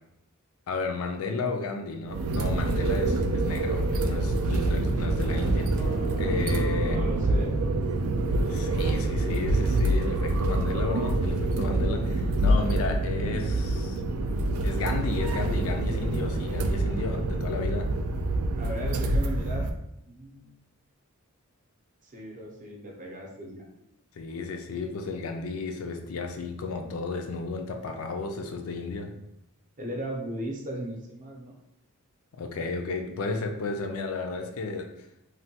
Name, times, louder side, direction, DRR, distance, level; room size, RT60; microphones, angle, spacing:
voice 1, 0.7-5.7 6.2-7.0 8.4-14.0 14.6-17.9 24.2-29.1 32.3-34.9, left 3 dB, 65° left, 4 dB, 0.4 m, -33 dB
sound 1, 2.1-19.7, right 2 dB, 70° right, 0.3 m, -26 dB
sound 2, 5.3-13.2, right 1 dB, 10° left, 0.5 m, -40 dB
voice 2, 6.9-7.6 14.0-14.3 18.6-19.7 20.1-20.5 22.0-23.7 29.8-31.6, right 1 dB, 35° right, -1 dB, 0.6 m, -37 dB
3.2 x 2.2 x 2.8 m, 0.82 s
head